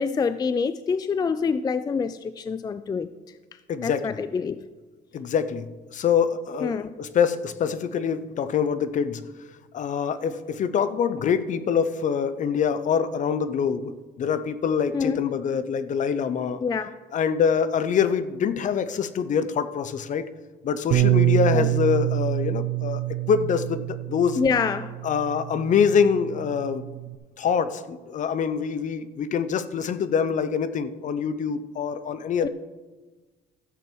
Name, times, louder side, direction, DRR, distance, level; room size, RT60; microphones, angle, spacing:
voice 1, 0.0-3.1 3.8-4.6 6.6-6.9 14.9-15.2 16.6-16.9 21.5-21.7 24.4-25.0 32.4-32.5, left 5 dB, 25° left, 13 dB, 0.3 m, -26 dB
voice 2, 3.7-4.2 5.1-9.2 9.7-16.6 17.1-20.3 20.6-23.0 23.3-24.4 25.0-26.9 27.4-32.5, left 7 dB, 50° left, 13 dB, 0.7 m, -25 dB
Bass guitar, 20.9-27.1, right 16 dB, 70° right, 0.8 m, -26 dB
13.5 x 7.6 x 4.5 m, 1.3 s
cardioid pair, 110°, 17 cm